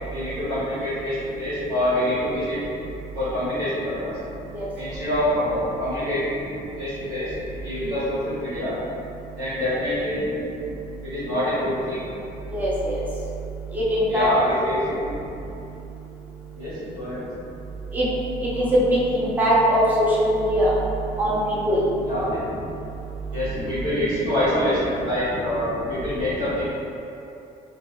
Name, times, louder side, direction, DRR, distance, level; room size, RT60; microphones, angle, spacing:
voice 1, 0.1-2.6 3.1-4.2 4.8-6.5 6.8-8.8 9.3-10.4 11.0-12.0 14.1-15.1 16.5-17.2 22.0-22.5 23.3-26.6, left 1 dB, 90° right, -12 dB, 1.4 m, -26 dB
voice 2, 12.5-13.0 13.7-14.3 17.9-18.1 18.6-18.8 19.1-20.7 21.2-21.4 21.7-21.8, equal, 10° right, -7 dB, 0.6 m, -20 dB
2.6 x 2.2 x 3.0 m, 2.7 s
cardioid pair, 110°, 17 cm